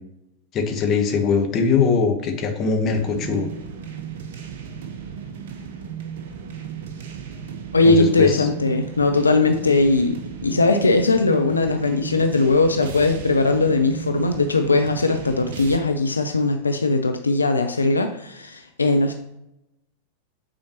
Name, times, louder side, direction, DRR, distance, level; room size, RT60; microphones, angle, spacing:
voice 1, 0.5-3.5 7.8-8.5, left 5 dB, 30° left, 4 dB, 1.1 m, -21 dB
sound 1, 2.9-15.8, right 7 dB, 55° right, 0.8 m, -35 dB
voice 2, 7.7-10.2 10.4-19.1, left 3 dB, 75° left, 6 dB, 0.4 m, -19 dB
8.7 x 4.3 x 2.9 m, 0.86 s
figure-of-eight pair, 90°, 0 cm